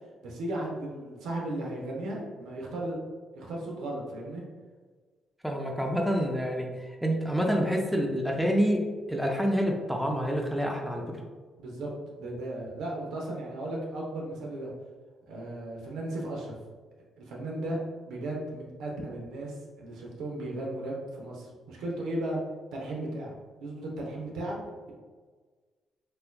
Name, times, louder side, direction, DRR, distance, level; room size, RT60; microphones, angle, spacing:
voice 1, 0.2-3.0 3.3-4.4 11.6-11.9 12.2-14.7 15.3-16.5 17.2-17.8 18.0-22.4 22.7-24.6, right 1 dB, 85° right, -1 dB, 0.8 m, -35 dB
voice 2, 5.4-8.8 9.1-11.0, equal, ahead, 1 dB, 0.5 m, -27 dB
4.2 x 2.6 x 2.2 m, 1.4 s
cardioid pair, 90°, 0 cm